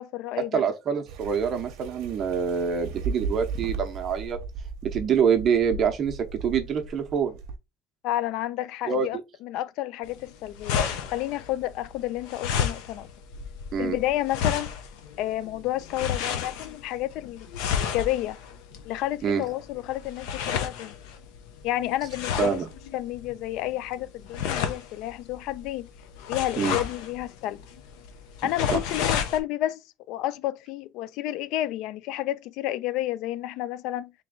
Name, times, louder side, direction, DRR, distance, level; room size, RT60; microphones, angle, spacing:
voice 1, 0.0-0.6 8.0-13.1 13.8-14.7 15.2-18.4 18.8-20.9 21.6-22.6 22.9-25.9 26.3-27.6 28.4-29.8 30.1-34.1, left 14 dB, 65° left, 0.3 m, -30 dB
voice 2, 0.5-4.4 4.8-7.3 8.9-9.1 13.7-14.0 19.2-19.4 22.4-22.7 26.6-26.8 28.7-28.8, right 7 dB, 35° right, 0.7 m, -25 dB
sound 1, 1.1-7.6, right 4 dB, 75° right, 0.7 m, -36 dB
sound 2, 10.0-29.4, left 8 dB, 80° left, 0.7 m, -32 dB
3.4 x 3.0 x 3.7 m
cardioid pair, 155°, 0 cm